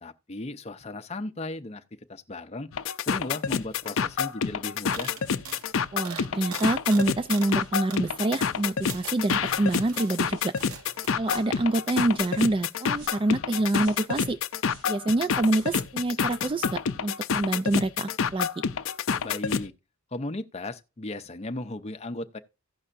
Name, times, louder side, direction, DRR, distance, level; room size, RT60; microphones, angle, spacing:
voice 1, 0.0-1.8 2.1-2.7 3.1-5.1 19.2-19.7 20.1-22.4, left 2 dB, 30° left, 0.6 m, -36 dB
sound 1, 2.7-19.7, left 6 dB, 70° left, 0.5 m, -28 dB
sound 2, 3.8-4.4 4.9-7.6 7.9-8.1 8.6-10.2 10.6-11.1, right 6 dB, 90° right, 1.1 m, -42 dB
voice 2, 5.9-10.6 11.2-14.4 14.9-18.6, right 2 dB, 25° right, 0.3 m, -26 dB
sound 3, 7.5-7.8 8.4-8.7 9.4-9.7 10.3-10.6 11.2-11.5 12.1-12.4 12.9-13.3 13.7-14.1 14.6-14.9 15.5-15.8 16.4-16.6, right 2 dB, 65° right, 2.8 m, -52 dB
16.0 x 5.6 x 2.5 m
head